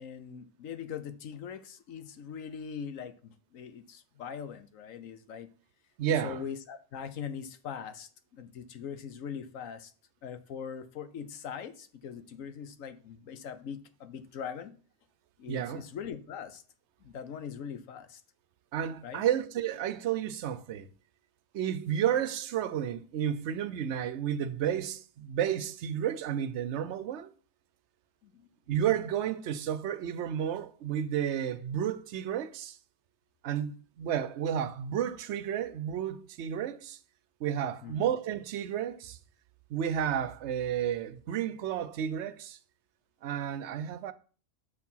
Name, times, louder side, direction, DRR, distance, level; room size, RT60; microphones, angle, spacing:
voice 1, 0.0-5.5 6.2-9.9 10.2-14.7 15.4-16.6 17.0-18.2 19.0-19.3 28.2-28.3 37.8-38.0, left 7 dB, 80° left, 1.2 m, -41 dB
voice 2, 6.0-6.4 15.5-15.8 18.7-20.9 21.5-27.3 28.7-32.8 33.4-37.0 37.4-39.2 39.7-42.6 43.2-44.1, right 9 dB, 65° right, 0.8 m, -31 dB
6.7 x 4.6 x 5.5 m
omnidirectional pair, 1.4 m